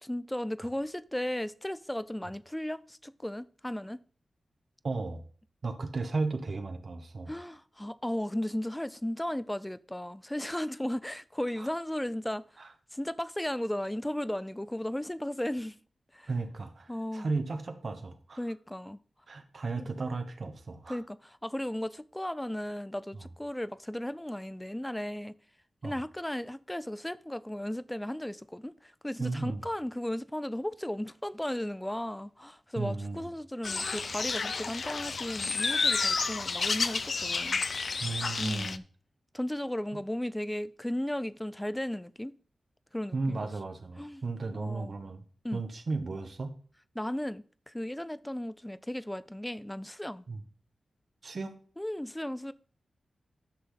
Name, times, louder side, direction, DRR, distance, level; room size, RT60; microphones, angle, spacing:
voice 1, 0.0-4.0 7.3-12.4 12.9-15.8 16.1-16.3 16.9-17.3 18.4-19.0 19.8-19.9 20.9-25.3 25.8-37.6 38.4-38.8 39.3-42.3 42.9-43.5 44.0-44.2 44.5-44.9 45.4-45.6 47.0-50.2 51.8-52.5, left 1 dB, 10° left, 0.5 m, -35 dB
voice 2, 4.8-5.2 5.6-7.3 11.6-11.7 12.6-12.7 16.3-18.4 19.3-21.0 23.1-23.3 25.8-26.0 29.2-29.6 32.7-33.3 38.0-38.8 39.9-40.0 43.1-45.2 45.5-46.5 50.3-50.4 51.2-51.5, right 3 dB, 60° right, 1.4 m, -35 dB
sound 1, 33.6-38.8, left 4 dB, 60° left, 0.5 m, -31 dB
11.0 x 6.3 x 3.9 m
cardioid pair, 70°, 0 cm